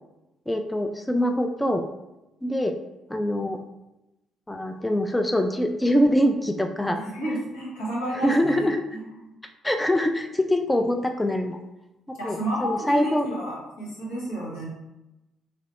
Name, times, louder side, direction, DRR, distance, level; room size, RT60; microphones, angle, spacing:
voice 1, 0.5-1.8 2.4-2.7 3.1-3.6 4.5-7.0 8.1-8.8 9.6-11.6 12.1-13.3, equal, 10° left, 5 dB, 0.4 m, -24 dB
voice 2, 7.0-8.5 8.9-9.3 12.2-14.6, equal, 85° left, -9 dB, 1.4 m, -31 dB
3.0 x 3.0 x 2.9 m, 0.96 s
hypercardioid pair, 45°, 0 cm